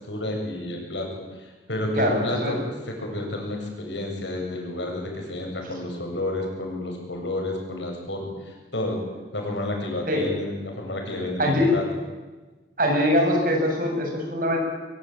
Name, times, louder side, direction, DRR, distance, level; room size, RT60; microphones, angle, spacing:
voice 1, 0.1-2.6 2.9-9.0 9.3-11.8, left 1 dB, 85° left, 2 dB, 7.7 m, -30 dB
voice 2, 1.9-2.6 10.1-10.3 11.4-11.7 12.8-14.6, equal, 50° right, 1 dB, 7.9 m, -22 dB
23.5 x 23.0 x 9.0 m, 1.3 s
head